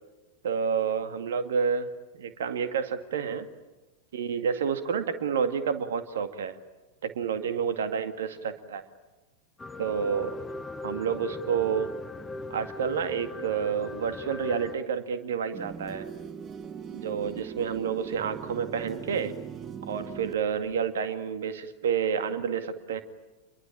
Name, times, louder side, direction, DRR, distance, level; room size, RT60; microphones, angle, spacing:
voice 1, 0.4-1.9 2.1-3.5 4.1-6.6 7.0-8.8 9.8-10.4 10.8-11.9 12.5-16.1 16.9-19.3 19.9-23.0, right 7 dB, 60° right, 9 dB, 2.1 m, -29 dB
sound 1, 9.6-14.8, left 2 dB, 15° left, 0.9 m, -39 dB
sound 2, 15.5-20.9, right 8 dB, 25° right, 1.0 m, -40 dB
28.5 x 22.5 x 8.9 m, 1.1 s
figure-of-eight pair, 90°, 0 cm